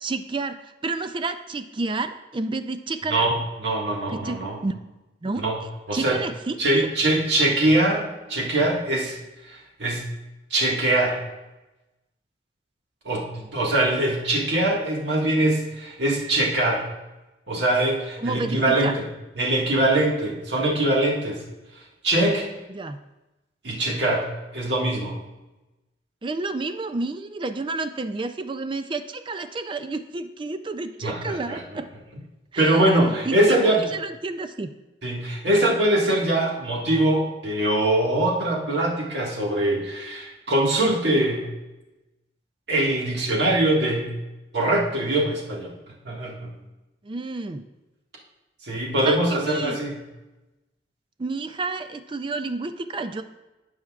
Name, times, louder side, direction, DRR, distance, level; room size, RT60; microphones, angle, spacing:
voice 1, 0.0-3.3 4.1-4.7 5.2-5.4 5.9-6.9 18.2-19.0 22.7-23.0 26.2-31.9 32.5-34.7 47.0-47.7 49.1-49.8 51.2-53.2, right 3 dB, 25° right, 9 dB, 0.4 m, -30 dB
voice 2, 3.1-4.6 5.4-5.6 5.9-6.2 6.6-9.2 9.4-10.1 10.5-11.2 13.1-16.9 17.5-19.0 19.4-21.4 21.8-22.5 23.6-25.2 31.0-31.6 32.6-33.8 35.0-41.5 42.7-44.1 44.5-45.7 46.0-46.5 48.6-50.0, right 1 dB, 65° right, -2 dB, 1.8 m, -23 dB
16.0 x 5.8 x 2.4 m, 1.0 s
head